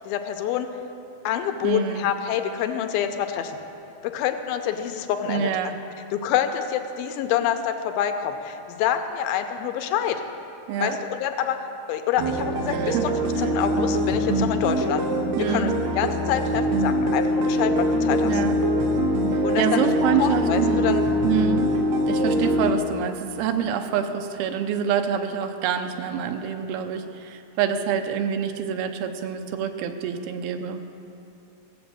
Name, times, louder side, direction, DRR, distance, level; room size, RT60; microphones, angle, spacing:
voice 1, 0.1-0.7 1.2-3.6 4.0-5.5 6.1-10.2 10.8-11.6 11.9-15.0 15.4-18.4 19.4-19.9 20.2-21.0, left 9 dB, 85° left, 7 dB, 2.5 m, -26 dB
voice 2, 1.6-2.1 5.3-5.8 10.7-11.0 12.7-13.1 13.4-13.5 15.4-15.8 18.2-18.5 19.3-21.7 22.1-30.8, right 8 dB, 90° right, 7 dB, 2.7 m, -26 dB
sound 1, 12.2-22.7, equal, 65° right, 1.8 m, -23 dB
15.5 x 7.9 x 7.5 m, 2.8 s
omnidirectional pair, 4.3 m